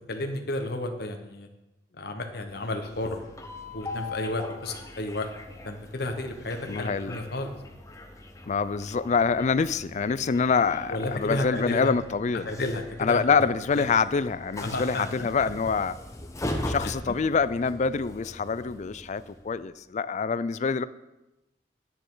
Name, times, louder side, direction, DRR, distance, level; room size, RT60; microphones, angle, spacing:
voice 1, 0.1-1.5 1.9-3.4 3.7-5.3 5.6-7.5 10.9-11.9 12.4-13.5 13.8-13.9 14.6-15.3 16.8-16.9, left 1 dB, 65° left, 5 dB, 1.2 m, -32 dB
Train, 2.5-19.6, left 1 dB, 20° left, 0.9 m, -40 dB
voice 2, 6.7-7.2 8.5-12.5 13.0-16.0 16.7-20.8, left 5 dB, 45° left, 15 dB, 0.4 m, -26 dB
9.9 x 9.9 x 3.9 m, 0.97 s
head